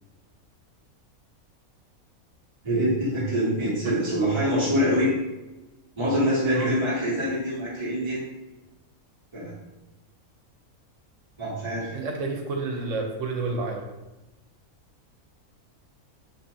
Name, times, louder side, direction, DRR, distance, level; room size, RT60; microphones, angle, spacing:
voice 1, 2.6-5.1 6.0-8.2 9.3-9.5 11.4-12.0, equal, 25° right, -8 dB, 0.8 m, -25 dB
voice 2, 11.9-13.9, right 3 dB, 65° right, 2 dB, 1.1 m, -30 dB
5.6 x 3.3 x 2.7 m, 1.1 s
omnidirectional pair, 1.5 m